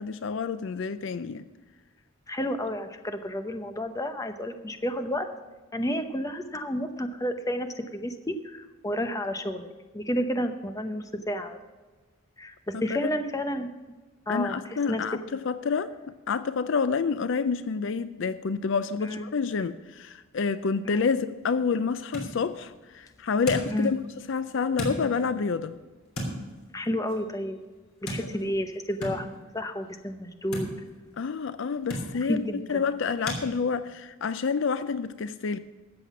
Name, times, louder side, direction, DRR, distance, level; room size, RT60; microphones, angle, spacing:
voice 1, 0.0-1.5 12.7-13.1 14.3-15.2 15.5-15.9 16.3-24.0 24.3-25.8 28.2-28.5 31.2-32.4 32.7-35.6, left 5 dB, 60° left, 0.4 m, -28 dB
voice 2, 2.3-5.3 5.7-9.7 9.9-11.6 12.4-13.7 14.3-14.6 14.9-15.0 19.0-19.3 20.8-21.1 23.7-24.0 26.7-27.6 28.0-30.7 32.1-32.9, equal, 15° left, 0.7 m, -31 dB
sound 1, 21.1-33.4, equal, 85° left, 3.2 m, -40 dB
13.5 x 7.8 x 5.9 m
head